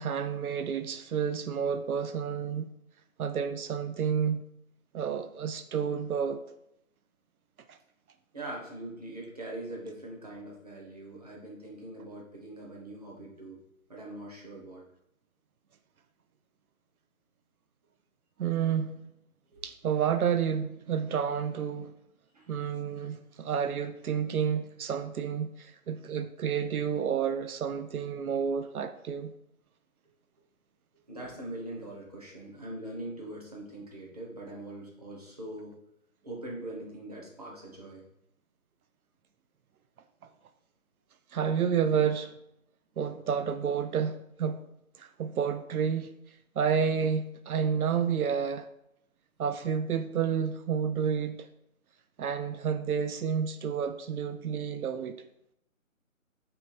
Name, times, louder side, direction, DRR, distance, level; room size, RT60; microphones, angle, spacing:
voice 1, 0.0-2.7 3.2-4.4 4.9-6.4 7.7-7.8 18.4-18.9 19.6-21.9 22.5-29.3 41.3-42.3 43.0-44.6 45.0-46.1 46.6-48.7 49.4-51.5 52.2-55.2, right 7 dB, 80° right, 0.5 m, -30 dB
voice 2, 8.3-13.6 13.9-14.8 19.5-19.7 22.3-22.5 31.1-35.7 36.2-38.1, right 1 dB, 25° right, 0.8 m, -42 dB
3.8 x 3.3 x 4.1 m
figure-of-eight pair, 170°, 43 cm